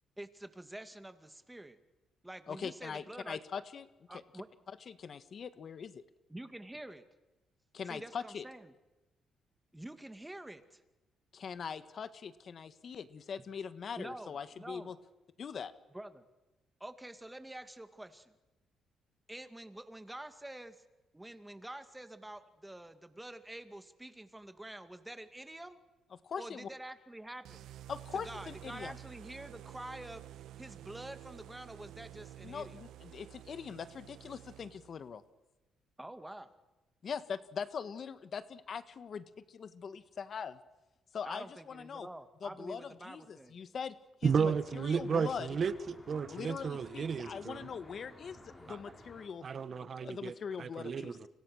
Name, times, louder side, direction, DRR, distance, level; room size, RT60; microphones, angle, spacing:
voice 1, 0.2-1.8 2.2-3.4 4.1-4.5 6.3-7.0 7.9-8.7 9.7-10.8 14.0-14.9 15.9-16.2 16.8-18.3 19.3-20.8 21.1-25.8 26.4-27.6 28.1-30.2 30.6-32.8 36.0-36.5 41.2-43.6, right 1 dB, 10° right, 9 dB, 2.3 m, -47 dB
voice 2, 2.5-3.9 4.9-6.0 7.7-8.4 11.3-14.9 15.4-15.7 26.2-26.7 27.9-29.0 32.4-35.2 37.0-40.6 41.1-42.1 42.4-43.9 44.2-45.5 46.3-49.4 49.8-51.2, left 6 dB, 50° left, 12 dB, 1.5 m, -42 dB
sound 1, 27.4-35.1, right 13 dB, 80° right, 1.2 m, -51 dB
Traffic noise roadway noise, 44.2-49.3, left 1 dB, 20° left, 7.6 m, -55 dB
voice 3, 44.2-47.6 48.7-48.8 49.4-51.3, right 6 dB, 50° right, 13 dB, 1.4 m, -33 dB
30.0 x 25.0 x 6.4 m, 1.1 s
cardioid pair, 90°, 0 cm